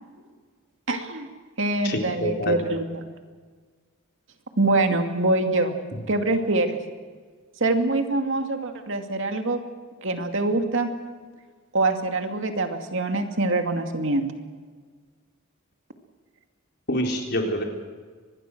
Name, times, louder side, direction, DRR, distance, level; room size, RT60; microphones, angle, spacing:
voice 1, 0.9-1.3 1.6-3.0 4.6-5.8 6.1-6.8 7.6-9.6 10.0-10.9 11.7-14.3, right 2 dB, 60° right, 5 dB, 2.5 m, -24 dB
voice 2, 1.8-2.5 16.9-17.6, equal, 50° left, 2 dB, 3.9 m, -26 dB
25.0 x 20.0 x 6.3 m, 1.5 s
head